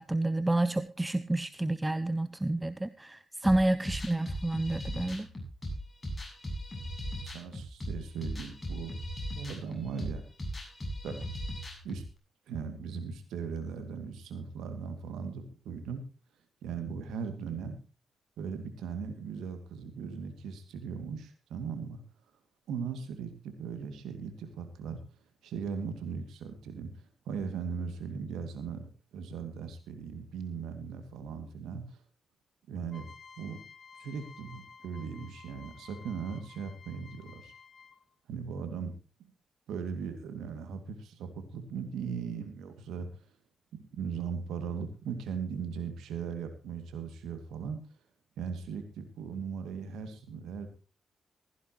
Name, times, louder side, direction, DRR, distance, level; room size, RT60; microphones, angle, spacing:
voice 1, 0.0-5.3, right 2 dB, 15° right, 15 dB, 0.7 m, -29 dB
sound 1, 3.4-12.0, equal, 25° left, 8.0 m, -38 dB
voice 2, 7.1-8.9 9.4-10.2 11.0-11.2 11.8-12.0 12.5-16.0 16.6-17.8 18.4-22.0 22.7-25.0 25.4-26.9 27.3-32.0 32.7-33.1 33.4-33.6 34.0-37.5 38.3-38.9 39.2-39.3 39.7-43.1 43.9-47.8 48.4-50.7, right 6 dB, 75° right, 8 dB, 2.4 m, -38 dB
sound 2, 32.9-38.1, left 5 dB, 55° left, 1.7 m, -53 dB
15.5 x 15.0 x 3.1 m, 0.33 s
hypercardioid pair, 40°, 0 cm